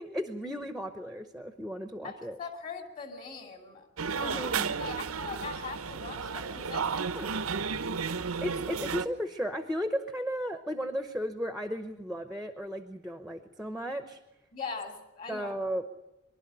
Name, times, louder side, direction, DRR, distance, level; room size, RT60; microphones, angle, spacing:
voice 1, 0.0-2.4 4.2-4.8 7.1-7.4 8.4-14.2 15.3-15.9, equal, ahead, 8 dB, 0.8 m, -35 dB
voice 2, 2.0-3.9 4.2-4.4 4.8-7.3 7.6-8.0 14.5-15.5, left 4 dB, 40° left, 4 dB, 2.5 m, -41 dB
sound 1, 4.0-9.1, right 5 dB, 85° right, 0.8 m, -33 dB
23.5 x 12.0 x 9.9 m, 0.99 s
head